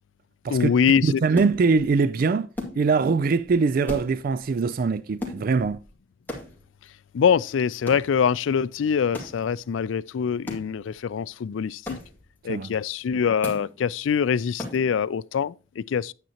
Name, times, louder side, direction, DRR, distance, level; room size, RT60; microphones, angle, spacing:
voice 1, 0.5-1.2 7.1-12.0 12.4-16.1, left 7 dB, 90° left, 0.4 m, -24 dB
voice 2, 1.0-2.5 2.8-5.8 12.5-12.7, right 4 dB, 50° right, 0.3 m, -22 dB
sound 1, 1.4-2.0 2.6-3.2 3.4-3.6 3.8-4.6 5.2-5.9 6.3-6.9 7.9-8.2 9.1-9.5 10.5-10.9 11.9-12.3 13.4-13.8 14.6-15.0, left 1 dB, 10° left, 2.1 m, -37 dB
9.1 x 9.0 x 2.8 m
head